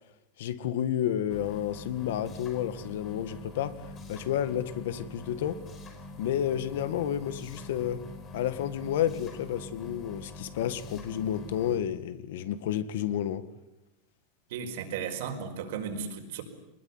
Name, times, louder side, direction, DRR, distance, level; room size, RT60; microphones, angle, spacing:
voice 1, 0.4-3.8 4.1-5.6 6.2-8.0 8.3-13.4, left 10 dB, 75° left, 1.9 m, -31 dB
sound 1, 1.3-11.8, left 2 dB, 20° left, 5.0 m, -45 dB
voice 2, 14.5-16.4, right 6 dB, 65° right, 5.0 m, -35 dB
24.0 x 21.0 x 9.7 m
supercardioid pair, 165°, 0 cm